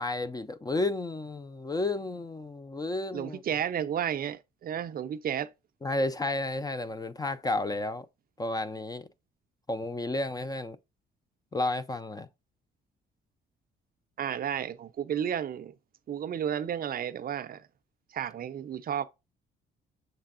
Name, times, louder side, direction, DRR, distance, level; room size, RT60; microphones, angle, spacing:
voice 1, 0.0-3.4 5.8-8.1 8.4-9.1 9.7-10.8 11.5-12.3, left 2 dB, 20° left, 0.4 m, -32 dB
voice 2, 3.1-5.5 14.2-15.7 16.1-17.6 18.1-19.1, right 9 dB, 50° right, 0.4 m, -32 dB
6.6 x 3.3 x 2.4 m
cardioid pair, 90°, 20 cm